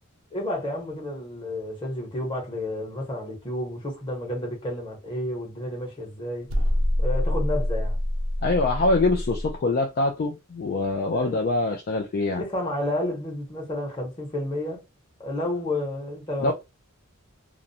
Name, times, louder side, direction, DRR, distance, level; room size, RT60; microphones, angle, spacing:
voice 1, 0.3-6.5 7.0-8.0 11.1-11.4 12.3-14.8 15.2-16.5, left 1 dB, 20° left, 1.0 m, -31 dB
sound 1, 6.5-9.6, left 1 dB, 65° right, 0.5 m, -25 dB
voice 2, 8.4-12.4 16.4-16.5, left 2 dB, 45° left, 0.3 m, -24 dB
2.4 x 2.0 x 2.7 m
head